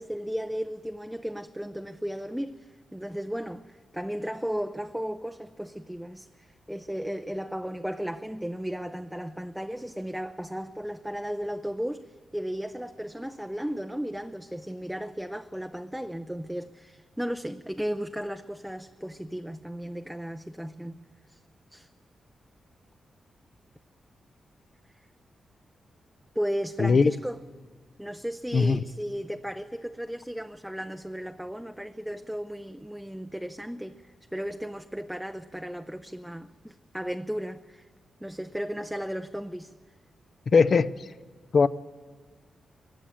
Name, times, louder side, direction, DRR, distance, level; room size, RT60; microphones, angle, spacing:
voice 1, 0.0-12.0 12.3-21.0 21.7-21.9 26.4-27.4 28.0-34.0 34.3-37.8 38.2-39.7, equal, 5° right, 0.6 m, -35 dB
voice 2, 26.8-27.1 28.5-28.8 40.5-40.9 41.5-41.7, left 5 dB, 50° left, 0.6 m, -19 dB
22.0 x 15.0 x 8.8 m
wide cardioid pair, 110°, 0 cm